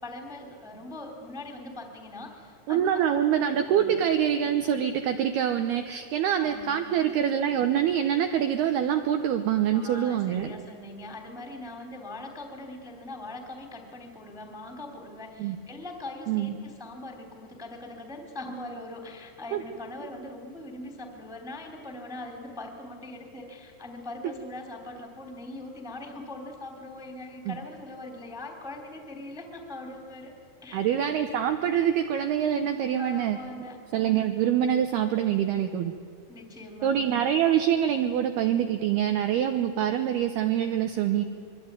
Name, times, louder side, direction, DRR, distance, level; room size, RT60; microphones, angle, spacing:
voice 1, 0.0-3.1 3.7-3.9 6.4-7.0 9.7-30.3 30.6-31.0 33.0-33.8 36.3-37.2, left 2 dB, ahead, 4 dB, 1.8 m, -41 dB
voice 2, 2.7-10.5 15.4-15.6 16.3-16.6 19.5-19.6 27.5-27.6 30.7-33.4 33.9-35.9 36.8-41.3, right 9 dB, 80° right, 7 dB, 2.3 m, -25 dB
25.0 x 23.0 x 9.7 m, 2.2 s
omnidirectional pair, 5.8 m